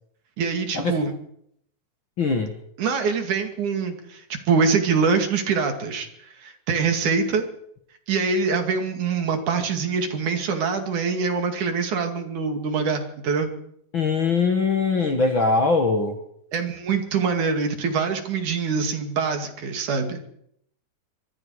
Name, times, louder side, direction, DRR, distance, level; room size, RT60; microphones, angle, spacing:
voice 1, 0.4-1.1 2.8-7.5 8.1-13.5 16.5-20.2, right 5 dB, 60° right, 6 dB, 3.7 m, -24 dB
voice 2, 2.2-2.6 13.9-16.2, left 4 dB, 45° left, 5 dB, 1.9 m, -21 dB
25.5 x 21.0 x 4.9 m, 0.73 s
omnidirectional pair, 4.0 m